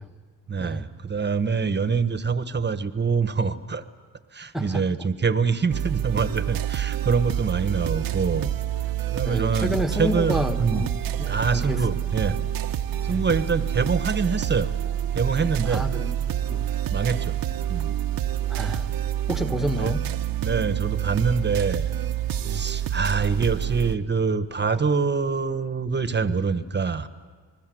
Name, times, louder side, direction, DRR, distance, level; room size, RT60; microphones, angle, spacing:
voice 1, 0.5-3.8 4.3-8.5 9.1-10.8 11.3-12.4 13.0-14.7 15.1-15.9 16.9-17.4 17.7-17.9 19.8-19.9 20.4-21.9 22.5-27.1, right 5 dB, 30° right, 11 dB, 1.3 m, -25 dB
sound 1, 5.7-24.0, right 11 dB, 65° right, 1.0 m, -27 dB
voice 2, 9.2-11.8 12.3-12.4 13.1-13.2 15.7-16.6 18.5-18.9 19.3-20.0 22.4-22.6, equal, ahead, 6 dB, 1.6 m, -30 dB
27.0 x 20.0 x 7.9 m, 1.5 s
cardioid pair, 80°, 38 cm